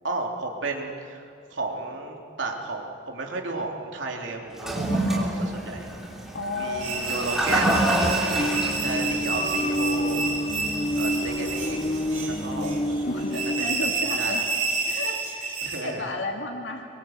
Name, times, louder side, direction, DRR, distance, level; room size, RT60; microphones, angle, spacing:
voice 1, 0.0-1.2 1.5-5.9 6.6-10.3 11.0-12.0 12.3-12.7 13.4-14.4 15.6-16.1, right 3 dB, 80° right, 1 dB, 3.5 m, -33 dB
Toilet flush, 4.5-13.8, right 1 dB, ahead, 3.6 m, -29 dB
voice 2, 6.3-7.4 12.6-14.5 14.9-16.9, left 2 dB, 80° left, 2 dB, 2.3 m, -33 dB
sound 1, 6.8-15.9, right 3 dB, 40° right, 4.2 m, -30 dB
sound 2, 8.4-13.6, equal, 30° left, 0.9 m, -28 dB
25.5 x 23.5 x 8.1 m, 2.4 s
head